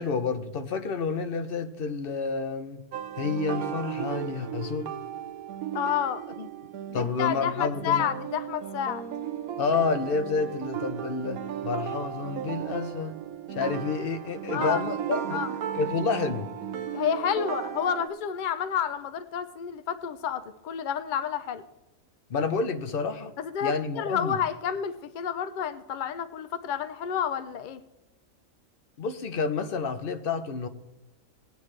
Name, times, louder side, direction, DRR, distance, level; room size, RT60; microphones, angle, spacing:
voice 1, 0.0-2.8 3.2-4.9 6.4-6.5 6.9-8.1 9.6-13.2 13.5-15.4 15.7-16.5 22.3-23.3 23.6-24.4 29.0-30.7, left 4 dB, 50° left, 0.8 m, -29 dB
sound 1, 2.9-18.1, right 9 dB, 85° right, 1.2 m, -35 dB
voice 2, 5.7-6.2 6.9-9.0 14.5-14.8 15.3-15.5 16.9-21.6 23.4-27.8, left 8 dB, 80° left, 0.4 m, -30 dB
19.0 x 9.4 x 3.2 m
omnidirectional pair, 1.5 m